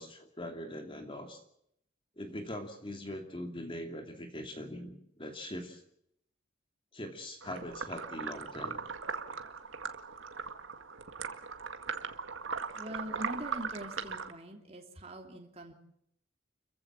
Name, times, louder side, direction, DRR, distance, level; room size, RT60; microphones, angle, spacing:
voice 1, 0.0-1.4 2.2-5.8 6.9-8.8, left 1 dB, 25° left, 5 dB, 2.7 m, -42 dB
sound 1, 7.4-14.3, right 5 dB, 80° right, 2.0 m, -39 dB
voice 2, 12.7-15.7, equal, 30° right, 2 dB, 3.1 m, -43 dB
29.5 x 15.5 x 7.5 m, 0.74 s
head